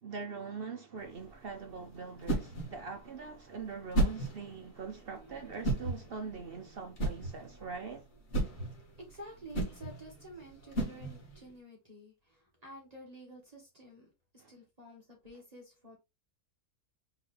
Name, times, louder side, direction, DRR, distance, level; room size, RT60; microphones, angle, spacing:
voice 1, 0.0-8.1 14.4-14.5, right 5 dB, 55° right, 0.7 m, -43 dB
sound 1, 1.0-11.5, right 2 dB, 50° left, 2.0 m, -36 dB
voice 2, 8.9-14.1 14.5-16.0, right 1 dB, 25° right, 1.7 m, -50 dB
4.0 x 3.8 x 3.3 m
omnidirectional pair, 1.6 m